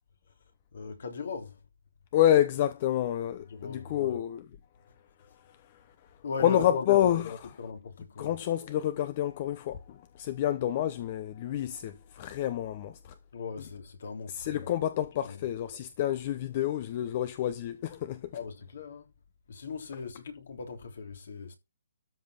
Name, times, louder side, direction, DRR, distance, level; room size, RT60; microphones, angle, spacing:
voice 1, 0.7-1.6 3.4-4.2 6.2-8.4 13.3-14.7 15.2-15.5 18.3-19.1 19.5-21.5, left 5 dB, 65° left, 3.3 m, -39 dB
voice 2, 2.1-4.4 6.4-7.2 8.2-9.8 10.2-12.9 14.3-18.3, left 12 dB, 35° left, 1.0 m, -28 dB
13.0 x 5.2 x 5.8 m
hypercardioid pair, 155°, 0 cm